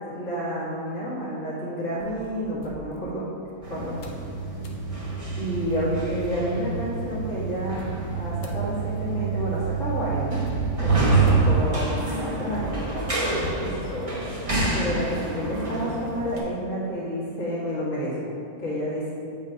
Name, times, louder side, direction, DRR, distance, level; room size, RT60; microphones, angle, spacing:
voice 1, 0.1-3.3 3.7-4.0 5.4-10.4 10.8-13.1 13.6-14.2 14.7-19.1, equal, 55° left, -9 dB, 2.3 m, -30 dB
sound 1, 2.0-3.6 4.0-4.3 4.6-4.9 5.4-5.5 5.7-6.8 7.8-15.4, left 1 dB, 75° left, 1.3 m, -37 dB
sound 2, 3.6-16.4, right 4 dB, 25° right, 1.1 m, -27 dB
8.0 x 5.3 x 5.1 m, 2.5 s
omnidirectional pair, 1.6 m